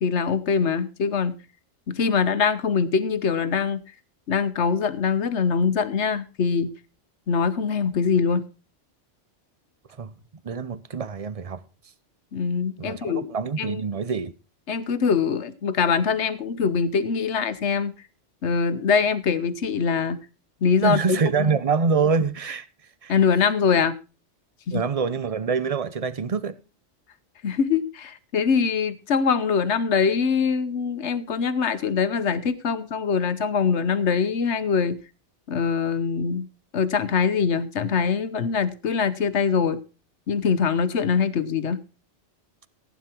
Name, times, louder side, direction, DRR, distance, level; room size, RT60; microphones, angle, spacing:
voice 1, 0.0-1.4 1.9-3.8 4.3-6.7 7.3-8.5 12.3-13.3 13.6-13.8 14.7-17.9 18.4-20.2 20.6-21.5 23.1-24.0 24.7-24.8 27.4-35.0 35.5-36.5 36.7-39.8 40.3-41.8, left 6 dB, 70° left, 1.3 m, -23 dB
voice 2, 10.4-11.6 12.8-14.3 20.8-22.7 23.0-23.1 24.7-26.6, right 5 dB, 35° right, 0.7 m, -25 dB
15.5 x 9.5 x 4.5 m
omnidirectional pair, 1.2 m